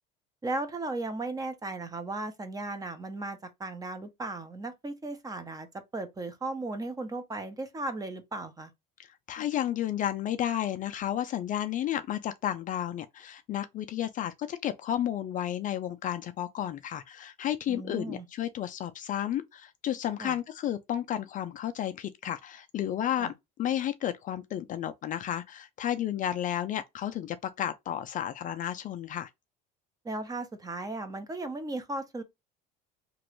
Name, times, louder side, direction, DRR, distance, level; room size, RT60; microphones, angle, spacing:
voice 1, 0.4-5.7 5.9-8.7 17.7-18.2 20.2-20.4 23.2-23.3 30.0-32.2, right 2 dB, 20° right, 0.7 m, -36 dB
voice 2, 9.0-23.3 23.6-29.3, left 11 dB, 40° left, 0.4 m, -32 dB
3.0 x 2.5 x 3.0 m
supercardioid pair, 105°, 20 cm